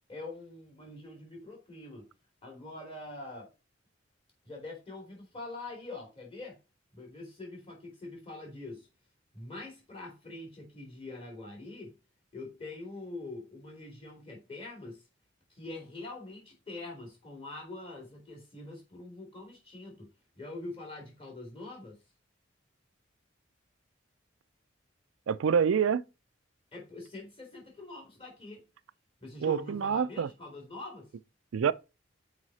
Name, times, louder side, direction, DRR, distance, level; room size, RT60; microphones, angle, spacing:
voice 1, 0.1-2.1 2.4-3.5 4.4-6.6 6.9-8.9 9.3-11.9 12.3-15.0 15.5-20.1 20.3-22.0 26.7-28.6 29.2-31.1, left 2 dB, 30° left, 3.0 m, -44 dB
voice 2, 25.3-26.0 29.4-30.3 31.5-31.7, right 7 dB, 85° right, 0.4 m, -26 dB
6.3 x 5.0 x 4.1 m
head